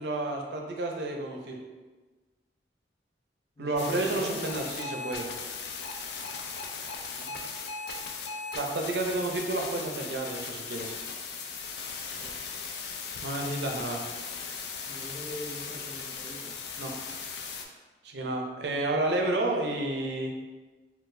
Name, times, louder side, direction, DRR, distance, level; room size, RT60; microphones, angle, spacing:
voice 1, 0.0-1.6 3.6-5.3 8.5-10.9 13.2-14.0 16.8-16.9 18.0-20.3, right 2 dB, 75° right, 1 dB, 0.5 m, -30 dB
voice 2, 3.5-4.4 7.1-7.4 12.2-12.4 14.8-16.5, equal, 40° left, -9 dB, 1.1 m, -42 dB
sound 1, 3.8-17.7, left 5 dB, 65° left, 0.3 m, -38 dB
3.9 x 2.3 x 2.5 m, 1.3 s
head